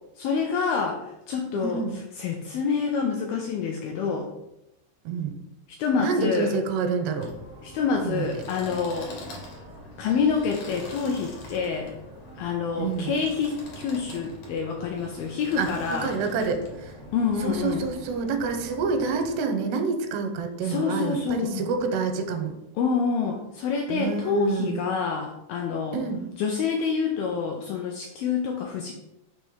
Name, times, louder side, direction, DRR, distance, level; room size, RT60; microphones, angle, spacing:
voice 1, 0.2-1.8 2.2-4.3 5.8-6.5 7.6-9.1 10.0-11.9 12.4-16.1 17.1-17.9 20.6-21.7 22.8-26.0 26.4-28.9, left 5 dB, 85° left, 1 dB, 2.1 m, -27 dB
voice 2, 1.5-2.0 5.1-5.4 6.0-7.3 8.0-8.4 12.8-13.1 15.6-16.9 17.4-22.5 23.9-24.8 25.9-26.2, right 4 dB, 85° right, 6 dB, 2.7 m, -28 dB
sound 1, 7.2-19.4, left 1 dB, 60° left, 2.0 m, -43 dB
6.4 x 3.1 x 5.4 m, 0.89 s
omnidirectional pair, 4.8 m